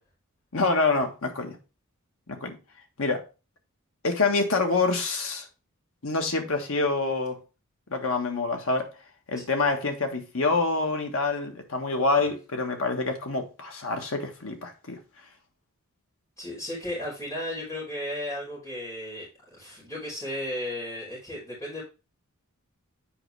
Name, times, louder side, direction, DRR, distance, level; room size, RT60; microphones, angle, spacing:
voice 1, 0.5-1.6 2.3-2.6 3.0-3.3 4.0-5.5 6.0-7.4 7.9-8.9 9.3-15.0, left 3 dB, 70° left, 1.4 m, -26 dB
voice 2, 16.4-21.8, left 1 dB, 15° left, 3.6 m, -35 dB
7.9 x 5.0 x 3.3 m
head